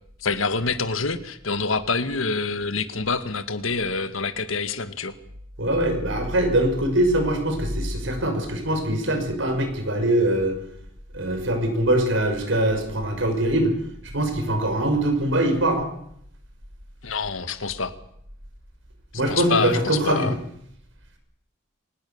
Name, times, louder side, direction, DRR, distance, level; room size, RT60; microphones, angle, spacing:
voice 1, 0.2-5.1 17.0-17.9 19.3-20.3, left 4 dB, 85° left, 11 dB, 1.7 m, -26 dB
voice 2, 5.6-10.6 11.1-13.7 14.1-15.9 19.1-20.3, right 1 dB, 70° right, 5 dB, 5.9 m, -22 dB
24.0 x 19.0 x 7.1 m, 0.72 s
head